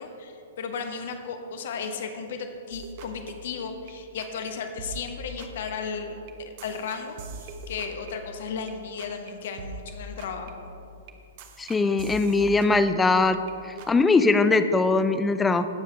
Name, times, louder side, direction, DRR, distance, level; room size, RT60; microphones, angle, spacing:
voice 1, 0.0-6.2 6.6-10.7, left 5 dB, 55° left, 5 dB, 1.3 m, -35 dB
sound 1, 2.7-4.5 4.8-9.3 9.6-13.5 13.8-14.1, right 1 dB, 45° right, 1.0 m, -42 dB
voice 2, 11.6-13.4 13.9-15.7, left 3 dB, 10° left, 10 dB, 0.5 m, -21 dB
17.5 x 7.5 x 3.5 m, 2.6 s
figure-of-eight pair, 110°, 0 cm